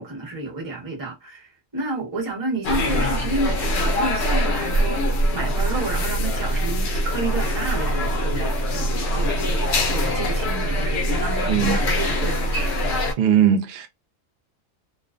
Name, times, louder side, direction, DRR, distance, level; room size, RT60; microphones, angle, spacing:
voice 1, 0.0-12.9, right 2 dB, 20° right, 0.8 m, -30 dB
sound 1, 2.6-13.1, equal, 65° left, 0.8 m, -23 dB
voice 2, 11.5-11.8 13.2-13.9, right 9 dB, 60° right, 0.6 m, -19 dB
2.4 x 2.1 x 2.4 m
omnidirectional pair, 1.4 m